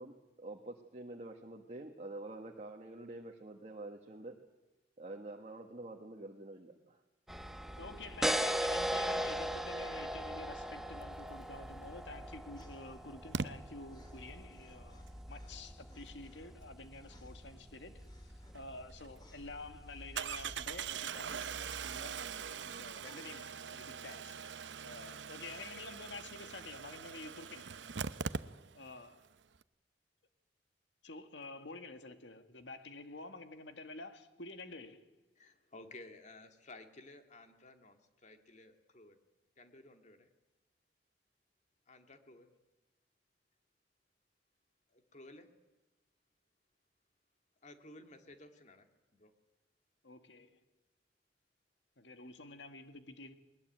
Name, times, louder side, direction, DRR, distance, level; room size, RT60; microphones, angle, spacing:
voice 1, 0.0-4.3 5.0-7.0, right 2 dB, 40° right, 1.6 m, -47 dB
sound 1, 7.3-20.9, equal, ahead, 0.9 m, -40 dB
voice 2, 7.8-24.4 24.8-27.8 28.7-29.3 31.0-35.1 50.0-50.6 52.0-53.3, left 3 dB, 80° left, 1.9 m, -49 dB
Engine starting, 11.8-11.9 13.3-13.5 18.5-18.6 19.0-19.1 20.2-29.0 29.2-29.3 29.5-29.6, right 6 dB, 85° right, 0.7 m, -42 dB
sound 2, 12.6-13.5 13.9-15.6 15.9-16.5 17.0-17.6 18.0-18.6 19.1-20.9 21.2-21.5 21.9-22.6 23.0-24.8 25.4-26.1 26.7-26.8, left 2 dB, 25° left, 3.0 m, -66 dB
voice 3, 35.4-39.2 39.6-40.3 41.9-42.5 44.9-45.5 47.6-48.9 49.1-49.3, left 2 dB, 40° left, 2.3 m, -55 dB
20.5 x 20.0 x 9.2 m
head